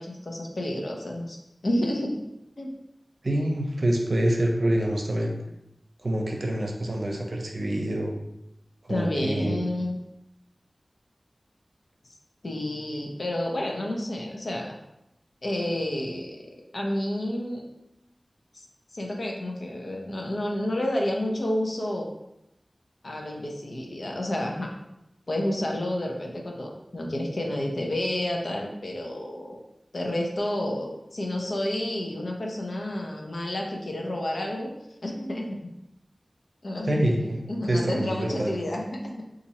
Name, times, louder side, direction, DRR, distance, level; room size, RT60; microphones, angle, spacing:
voice 1, 0.0-1.4 1.6-2.2 2.6-2.7 8.9-10.0 12.4-14.7 15.4-16.5 16.7-17.6 18.5-18.7 18.9-22.1 23.0-24.7 25.3-29.6 29.9-34.7 35.0-35.7 36.6-37.2 37.5-39.2, left 1 dB, 65° left, 0 dB, 0.7 m, -30 dB
voice 2, 3.2-5.4 6.0-8.1 8.8-9.6 36.8-37.4 37.7-38.5, right 1 dB, 65° right, 1 dB, 0.6 m, -26 dB
4.1 x 2.5 x 2.9 m, 0.86 s
wide cardioid pair, 70°, 0 cm